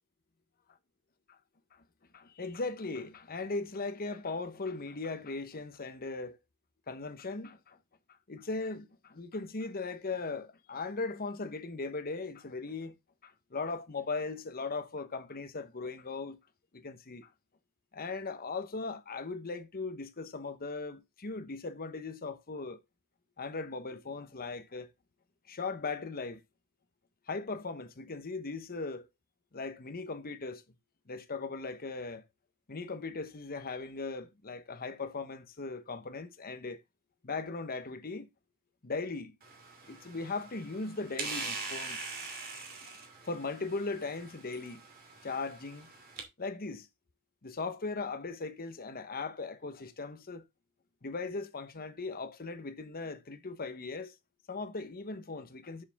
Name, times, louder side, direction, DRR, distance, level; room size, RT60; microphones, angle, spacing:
voice 1, 2.1-6.4 6.9-7.8 8.3-13.0 13.2-16.4 16.7-17.3 17.9-22.8 23.4-24.9 25.5-26.4 27.3-29.1 29.5-30.6 31.1-32.3 32.7-36.8 37.2-38.3 38.8-39.3 39.9-42.1 43.3-44.8 45.2-45.9 46.4-46.9 47.4-50.4 51.0-54.2 54.5-55.8, left 3 dB, 40° left, 1.0 m, -38 dB
sound 1, 39.4-46.2, right 3 dB, 45° right, 2.6 m, -43 dB
7.4 x 6.7 x 3.5 m
head